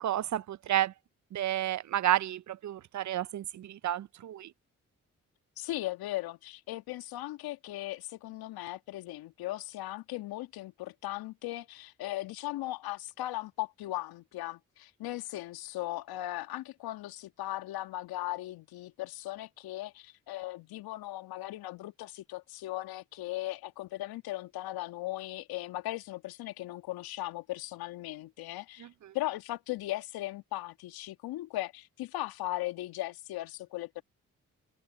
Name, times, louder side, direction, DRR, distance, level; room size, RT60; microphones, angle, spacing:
voice 1, 0.0-0.9 1.3-4.5 28.8-28.9, right 12 dB, 50° right, 0.7 m, -31 dB
voice 2, 5.6-28.9 29.1-34.0, left 16 dB, 75° left, 2.0 m, -38 dB
open air
hypercardioid pair, 40°, 37 cm